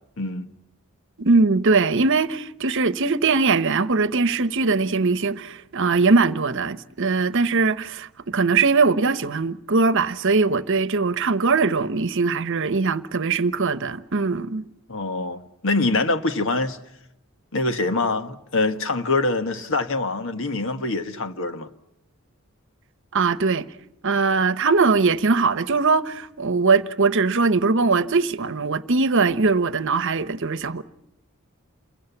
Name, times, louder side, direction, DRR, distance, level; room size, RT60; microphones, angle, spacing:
voice 1, 1.2-14.6 23.1-23.7 24.0-30.8, right 4 dB, 60° right, 1.0 m, -21 dB
voice 2, 14.9-16.8 17.5-21.7, left 3 dB, 65° left, 1.5 m, -24 dB
28.5 x 22.5 x 7.2 m
head